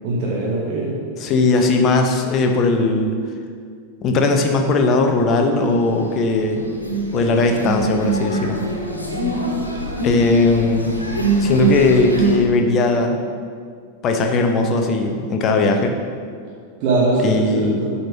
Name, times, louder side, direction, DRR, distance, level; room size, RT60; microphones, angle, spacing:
voice 1, 0.0-1.0 16.8-17.9, right 2 dB, 40° right, -5 dB, 1.4 m, -21 dB
voice 2, 1.2-3.1 4.0-6.6 7.1-8.6 10.0-10.9 11.4-13.2 14.0-15.9 17.2-17.9, left 3 dB, 35° left, 4 dB, 0.9 m, -18 dB
sound 1, 5.5-6.1 6.4-12.4, right 2 dB, 80° left, 1.5 m, -23 dB
7.7 x 4.4 x 5.4 m, 2.1 s
figure-of-eight pair, 90°, 0 cm